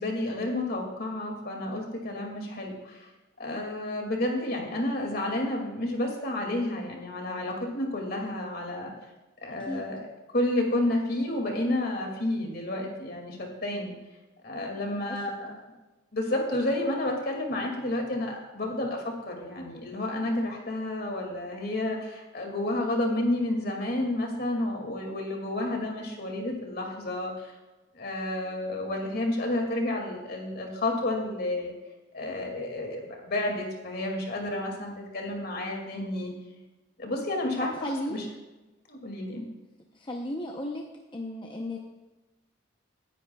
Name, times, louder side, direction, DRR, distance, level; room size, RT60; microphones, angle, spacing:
voice 1, 0.0-3.1 3.4-8.9 9.4-10.1 10.3-13.9 14.4-15.5 16.1-27.5 27.9-31.7 32.1-36.3 37.0-38.3 38.9-39.5, left 1 dB, 55° left, 1 dB, 2.3 m, -30 dB
voice 2, 14.9-15.4 37.6-38.3 40.0-40.8 41.1-41.8, left 1 dB, 25° left, 1 dB, 0.7 m, -35 dB
18.0 x 10.0 x 2.3 m, 1.1 s
head